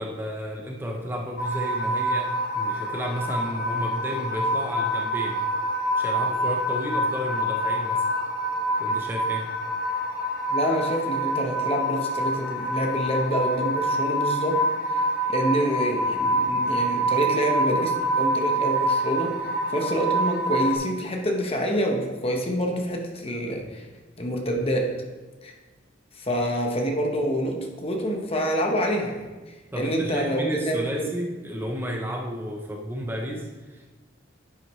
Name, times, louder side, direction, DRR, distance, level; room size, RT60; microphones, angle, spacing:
voice 1, 0.0-5.5 5.9-8.1 8.8-9.5 29.7-33.9, equal, 10° right, 0 dB, 0.7 m, -32 dB
sound 1, 1.4-20.8, right 1 dB, 45° left, 1.4 m, -26 dB
voice 2, 10.5-14.7 14.9-15.0 15.3-19.4 19.7-23.9 24.2-25.1 25.4-25.5 26.2-31.1, equal, 30° left, 2 dB, 1.0 m, -27 dB
10.0 x 7.7 x 3.2 m, 1.2 s
head